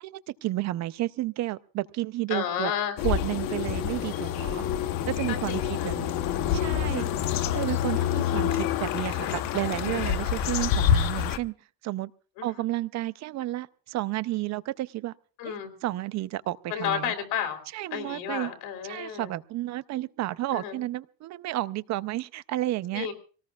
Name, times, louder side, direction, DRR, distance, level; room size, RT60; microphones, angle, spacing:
voice 1, 0.0-2.7 3.0-4.6 5.1-6.1 6.5-7.1 7.5-11.5 11.8-12.1 12.4-15.1 15.5-15.6 15.8-17.0 17.7-18.5 18.9-23.1, right 16 dB, 50° right, 0.6 m, -31 dB
voice 2, 2.3-3.0 5.3-5.9 7.0-7.3 12.4-12.5 15.4-15.7 16.7-17.6 17.9-19.3 20.5-20.8 22.9-23.1, left 9 dB, 80° left, 3.4 m, -32 dB
sound 1, 3.0-11.4, left 9 dB, 65° left, 1.0 m, -27 dB
sound 2, 4.2-10.6, left 5 dB, 45° left, 1.7 m, -40 dB
25.5 x 18.5 x 2.4 m
cardioid pair, 145°, 37 cm